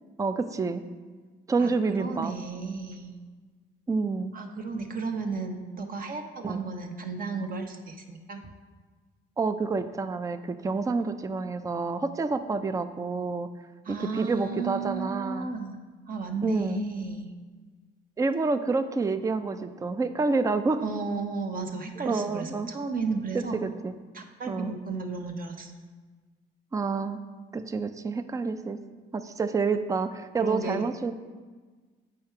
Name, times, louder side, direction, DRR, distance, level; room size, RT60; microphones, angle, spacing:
voice 1, 0.2-0.8 1.5-2.3 3.9-4.3 6.4-6.6 9.4-13.5 13.9-15.5 16.4-16.8 18.2-20.8 22.0-22.7 23.3-23.9 24.5-24.7 26.7-27.2 27.5-28.8 29.1-31.1, right 4 dB, 15° right, 10 dB, 0.4 m, -28 dB
voice 2, 1.6-3.1 4.3-8.4 13.8-15.8 16.1-17.3 20.8-23.6 24.1-25.7 30.4-30.8, right 4 dB, 45° right, 4 dB, 0.9 m, -33 dB
7.6 x 4.8 x 4.4 m, 1.4 s
cardioid pair, 90°, 20 cm